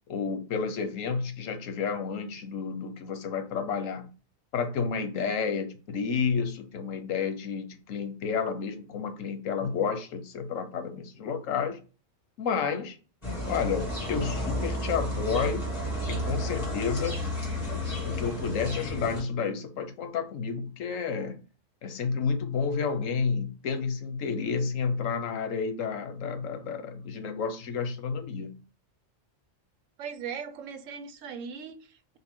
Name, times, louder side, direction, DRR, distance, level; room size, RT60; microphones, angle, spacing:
voice 1, 0.1-4.1 4.5-11.8 12.4-13.0 13.5-15.6 16.1-17.2 18.0-21.4 21.8-28.6, left 5 dB, 90° left, 1.2 m, -30 dB
sound 1, 13.2-19.2, left 1 dB, 30° left, 2.0 m, -32 dB
voice 2, 30.0-32.2, right 6 dB, 80° right, 1.0 m, -39 dB
5.9 x 2.2 x 3.6 m
omnidirectional pair, 1.3 m